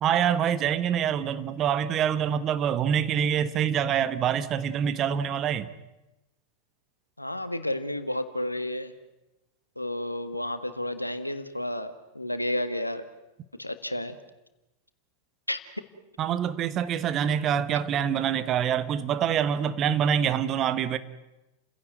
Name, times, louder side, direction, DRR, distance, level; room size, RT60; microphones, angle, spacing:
voice 1, 0.0-5.7 16.2-21.0, right 8 dB, 30° right, 1.3 m, -25 dB
voice 2, 7.2-8.9 9.7-13.0 13.6-14.2 15.5-15.6, left 1 dB, 85° left, 1.6 m, -31 dB
30.0 x 16.5 x 9.2 m
figure-of-eight pair, 90°, 0 cm